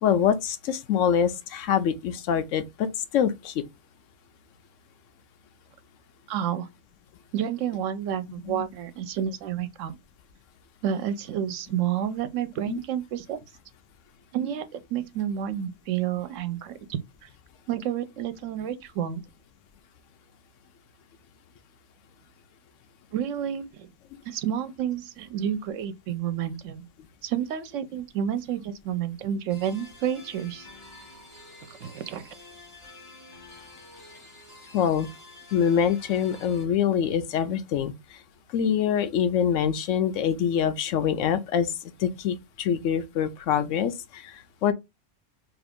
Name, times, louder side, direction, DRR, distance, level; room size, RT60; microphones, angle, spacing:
voice 1, 0.0-2.9 3.1-3.6 8.4-8.7 12.7-12.8 34.7-35.1 35.5-38.2 38.5-41.7 42.0-44.7, left 8 dB, 80° left, 1.0 m, -25 dB
voice 2, 6.3-6.7 7.3-9.9 10.8-13.4 14.3-17.0 17.7-19.2 23.1-23.9 24.3-26.8 27.2-30.7 31.7-32.3, right 9 dB, 80° right, 0.9 m, -30 dB
sound 1, 29.5-36.7, left 2 dB, 25° left, 1.5 m, -49 dB
3.0 x 2.4 x 3.5 m
omnidirectional pair, 1.3 m